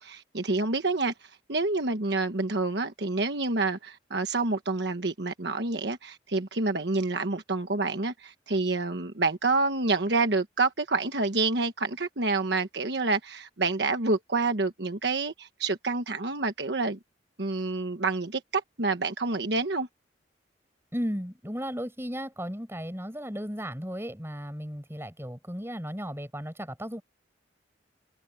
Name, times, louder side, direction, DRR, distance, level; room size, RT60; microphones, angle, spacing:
voice 1, 0.0-17.0 17.4-19.9, right 3 dB, 60° right, 1.3 m, -28 dB
voice 2, 20.9-27.0, equal, 15° right, 6.3 m, -35 dB
head